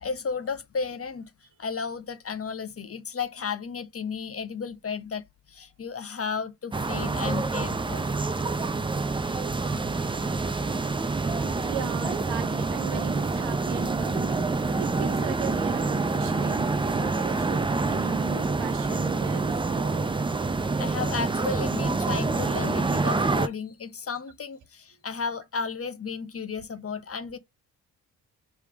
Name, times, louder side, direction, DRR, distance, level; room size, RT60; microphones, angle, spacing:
voice 1, 0.0-1.3 1.6-8.1 20.8-27.4, left 5 dB, 30° left, 0.8 m, -33 dB
sound 1, 6.7-23.5, right 3 dB, 10° right, 0.5 m, -27 dB
Wind instrument woodwind instrument, 8.0-12.2, right 8 dB, 85° right, 1.4 m, -43 dB
voice 2, 11.3-20.0, right 9 dB, 65° right, 0.9 m, -38 dB
3.3 x 3.1 x 4.8 m
hypercardioid pair, 45°, 45 cm